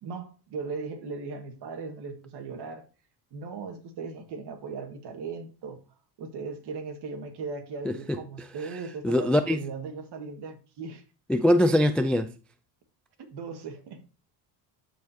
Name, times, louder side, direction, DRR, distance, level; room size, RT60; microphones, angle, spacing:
voice 1, 0.0-2.8 3.3-5.8 6.2-11.0 13.2-14.0, right 4 dB, 55° right, 2.0 m, -38 dB
voice 2, 9.0-9.6 11.3-12.3, left 1 dB, 5° left, 0.3 m, -22 dB
12.0 x 4.8 x 2.8 m
supercardioid pair, 105°, 48 cm